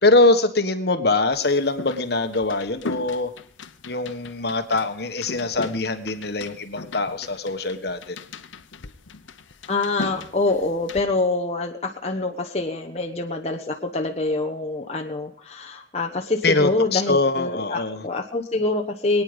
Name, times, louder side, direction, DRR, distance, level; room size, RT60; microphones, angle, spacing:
voice 1, 0.0-3.3 3.8-8.2 16.4-18.0, left 2 dB, 55° left, 8 dB, 1.4 m, -22 dB
sound 1, 1.3-11.0, left 3 dB, 85° left, 0.9 m, -38 dB
voice 2, 9.7-19.2, left 2 dB, 35° left, 2 dB, 1.1 m, -25 dB
22.5 x 9.6 x 5.2 m, 0.62 s
head